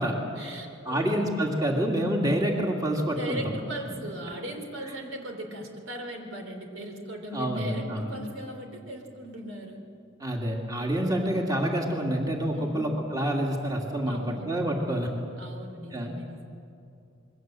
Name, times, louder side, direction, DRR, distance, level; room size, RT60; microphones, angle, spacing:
voice 1, 0.4-1.3 1.6-1.9 3.1-9.8 12.5-12.9 14.1-14.5 15.4-16.4, right 1 dB, 75° right, 4 dB, 3.7 m, -38 dB
voice 2, 0.9-3.5 7.3-8.2 10.2-15.1 15.9-16.1, equal, 20° right, 0 dB, 2.5 m, -27 dB
27.5 x 22.0 x 7.7 m, 2.6 s
head